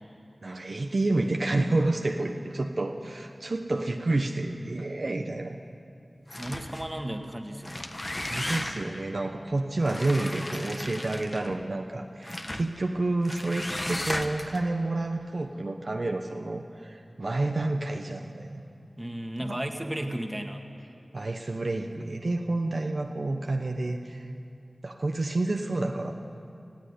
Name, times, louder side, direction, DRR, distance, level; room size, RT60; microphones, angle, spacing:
voice 1, 0.4-5.6 8.3-18.6 19.4-19.6 21.1-24.3 24.8-26.1, right 2 dB, 65° right, 3 dB, 1.0 m, -29 dB
sound 1, 6.3-6.9 7.5-9.0 9.8-11.6 12.2-12.7 13.2-14.6, left 1 dB, 30° left, 1.3 m, -35 dB
voice 2, 6.3-8.0 19.0-20.6, right 1 dB, 20° right, 4 dB, 1.8 m, -34 dB
19.0 x 15.0 x 9.8 m, 2.5 s
wide cardioid pair, 45°, 0 cm